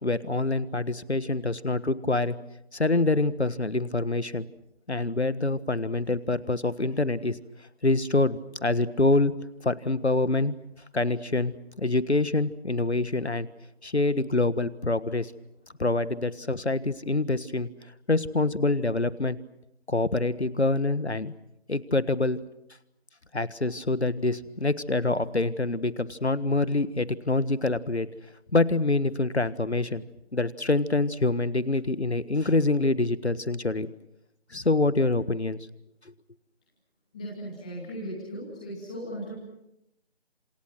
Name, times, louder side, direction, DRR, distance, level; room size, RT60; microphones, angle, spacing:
voice 1, 0.0-2.4 2.7-4.5 4.9-7.4 7.8-9.3 9.6-10.5 10.9-13.5 13.8-15.3 15.8-17.7 18.1-19.4 19.9-21.3 21.7-22.4 23.3-28.1 28.5-30.0 30.3-33.9 34.5-35.6, left 2 dB, 80° left, 16 dB, 1.5 m, -26 dB
voice 2, 37.1-39.3, equal, 5° left, -6 dB, 2.5 m, -37 dB
29.0 x 27.0 x 6.2 m, 0.83 s
figure-of-eight pair, 165°, 33 cm